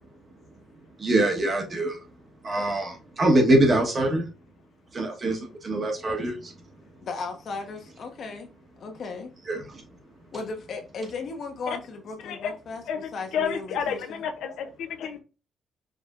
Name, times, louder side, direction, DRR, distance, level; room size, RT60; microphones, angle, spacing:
voice 1, 1.0-2.0 2.4-4.3 4.9-6.5 9.5-9.8, right 1 dB, 35° right, 1.1 m, -24 dB
voice 2, 7.0-8.5 8.8-9.3 10.3-14.2, left 3 dB, 55° left, 1.0 m, -36 dB
voice 3, 12.9-15.2, left 7 dB, 80° left, 0.7 m, -31 dB
5.0 x 3.3 x 2.4 m
cardioid pair, 115°, 0 cm